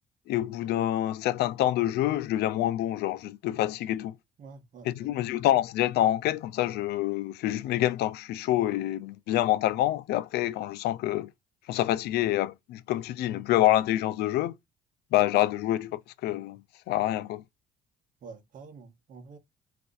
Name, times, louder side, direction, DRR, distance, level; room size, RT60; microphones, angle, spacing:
voice 1, 0.3-4.2 4.8-11.3 11.7-14.5 15.1-16.6 16.9-17.4, left 14 dB, 75° left, 0.4 m, -27 dB
voice 2, 4.4-5.1 18.2-19.4, right 4 dB, 50° right, 0.9 m, -47 dB
2.7 x 2.4 x 3.9 m
cardioid pair, 110°, 17 cm